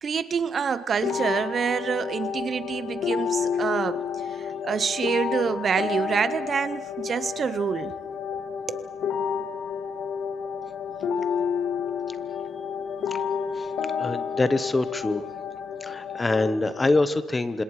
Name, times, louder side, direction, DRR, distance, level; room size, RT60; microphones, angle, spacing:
voice 1, 0.0-7.9 8.7-8.9, right 6 dB, 30° right, 14 dB, 0.7 m, -27 dB
sound 1, 1.0-17.0, left 7 dB, 55° left, 1.8 m, -30 dB
voice 2, 14.0-15.2 15.8-17.6, left 2 dB, 15° left, 13 dB, 1.0 m, -25 dB
28.0 x 26.0 x 4.8 m, 1.2 s
cardioid pair, 155°, 0 cm